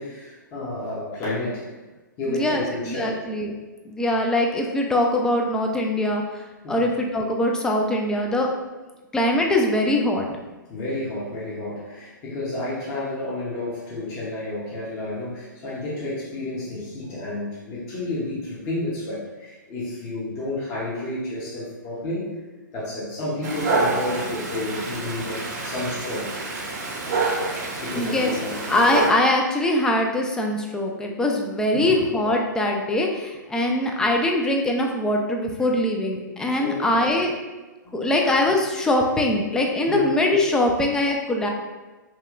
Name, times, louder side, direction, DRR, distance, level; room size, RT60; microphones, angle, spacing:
voice 1, 0.0-1.7 2.2-3.2 6.6-6.9 10.7-22.3 22.7-26.3 27.8-28.6 30.9-31.1 31.7-32.0 33.6-33.8 36.2-36.9 37.8-38.1 39.9-40.0, left 1 dB, 30° left, -7 dB, 0.8 m, -31 dB
voice 2, 2.3-3.5 3.9-6.2 6.7-8.5 9.1-10.3 28.0-37.3 37.9-41.5, left 1 dB, 5° left, 1 dB, 0.3 m, -22 dB
Dog, 23.4-29.1, right 3 dB, 55° right, 0.6 m, -27 dB
2.9 x 2.8 x 2.4 m, 1.2 s
figure-of-eight pair, 120°, 11 cm